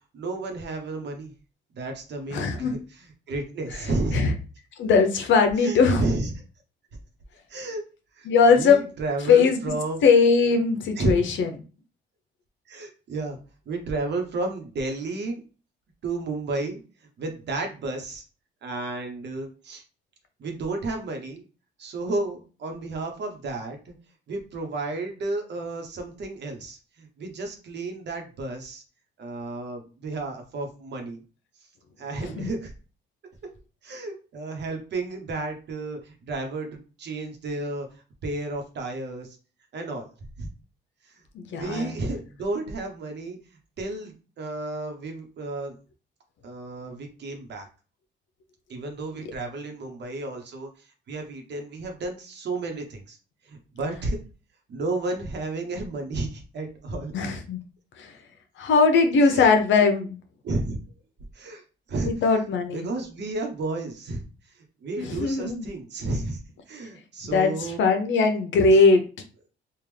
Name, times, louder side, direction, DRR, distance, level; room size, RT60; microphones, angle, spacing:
voice 1, 0.1-1.3 1.7-2.8 3.3-4.2 5.6-6.3 7.5-7.8 8.2-10.1 11.0-11.1 12.7-13.4 13.7-15.4 16.0-16.8 17.2-18.2 18.6-19.8 20.4-21.4 21.8-23.9 24.3-28.8 29.2-31.2 32.0-32.7 33.8-39.4 39.7-40.1 40.4-40.5 41.0-41.1 41.5-43.4 43.8-45.8 46.4-47.7 48.7-53.2 53.4-54.2 54.7-57.1 59.3-59.5 60.4-60.8 61.3-61.6 61.9-62.1 62.7-64.2 64.8-66.4 66.7-67.8, right 2 dB, 60° right, 4 dB, 1.1 m, -32 dB
voice 2, 2.3-2.7 3.7-4.3 4.8-6.0 8.2-8.8 9.3-9.6 10.0-11.5 32.2-32.5 41.3-42.0 57.1-57.6 58.0-58.1 58.6-60.2 62.0-62.9 65.0-65.7 67.3-69.0, left 4 dB, 70° left, 6 dB, 0.8 m, -20 dB
3.5 x 2.4 x 3.3 m, 0.35 s
cardioid pair, 90°, 20 cm